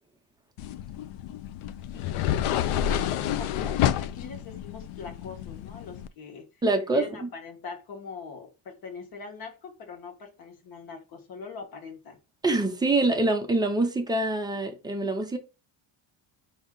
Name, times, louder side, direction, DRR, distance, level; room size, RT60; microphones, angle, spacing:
sound 1, 0.6-6.1, left 11 dB, 80° left, 0.6 m, -29 dB
voice 1, 1.9-6.6 6.9-12.2, left 5 dB, 45° left, 1.3 m, -42 dB
voice 2, 6.6-7.3 12.4-15.4, right 2 dB, 10° right, 0.3 m, -25 dB
5.3 x 2.7 x 3.6 m
cardioid pair, 175°, 50 cm